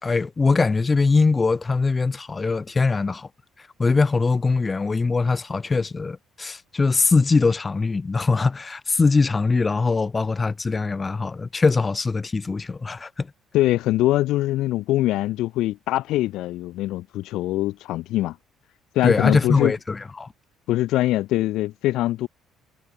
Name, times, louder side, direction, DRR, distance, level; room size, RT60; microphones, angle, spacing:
voice 1, 0.0-3.3 3.8-13.3 19.0-20.3, left 4 dB, 30° left, 1.6 m, -22 dB
voice 2, 13.5-18.4 18.9-19.7 20.7-22.3, left 16 dB, 70° left, 0.7 m, -23 dB
hypercardioid pair, 55°, 0 cm